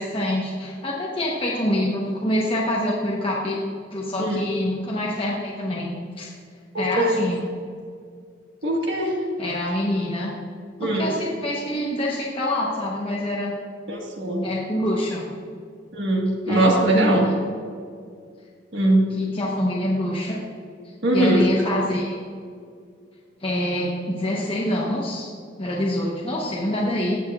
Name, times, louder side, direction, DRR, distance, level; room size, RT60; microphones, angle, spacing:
voice 1, 0.0-3.6 3.9-6.3 6.8-7.4 9.4-10.3 10.8-13.5 14.4-15.3 16.5-17.4 19.1-20.4 21.1-22.2 23.4-25.3 25.6-27.2, left 1 dB, 30° left, -4 dB, 1.1 m, -25 dB
voice 2, 6.7-7.2 8.6-9.1 10.8-11.1 13.9-14.5 15.9-17.3 18.7-19.1 21.0-21.5, right 1 dB, 65° right, 0 dB, 1.6 m, -21 dB
17.5 x 6.6 x 2.5 m, 2.2 s
head